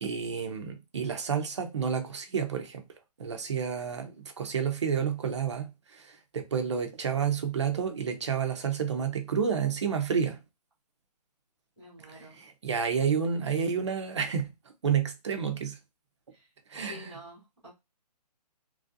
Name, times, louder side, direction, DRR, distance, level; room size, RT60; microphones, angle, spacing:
voice 1, 0.0-2.8 3.2-10.4 12.1-14.5 14.8-15.8 16.7-17.1, right 7 dB, 45° right, 0.6 m, -30 dB
voice 2, 11.8-12.4 16.3-17.7, equal, ahead, 0.4 m, -49 dB
3.1 x 2.6 x 2.5 m
hypercardioid pair, 175°, 21 cm